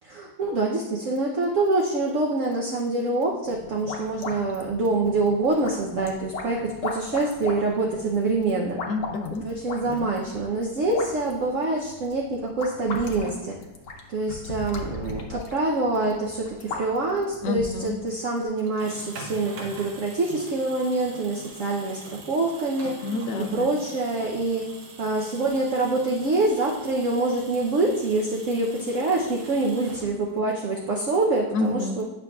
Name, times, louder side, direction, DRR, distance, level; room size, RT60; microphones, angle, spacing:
voice 1, 0.0-8.8 9.4-13.6 14.1-22.9 23.5-24.7 25.0-32.0, right 2 dB, 60° right, -2 dB, 0.9 m, -25 dB
sound 1, 3.5-18.0, left 3 dB, 55° left, 1.0 m, -38 dB
voice 2, 8.9-9.5 9.8-10.1 17.4-18.0 23.0-23.8 31.5-32.0, left 2 dB, 85° left, 6 dB, 1.3 m, -29 dB
sound 2, 18.6-30.5, right 2 dB, 90° right, 1.8 m, -43 dB
9.2 x 6.1 x 2.3 m, 1.0 s
omnidirectional pair, 1.9 m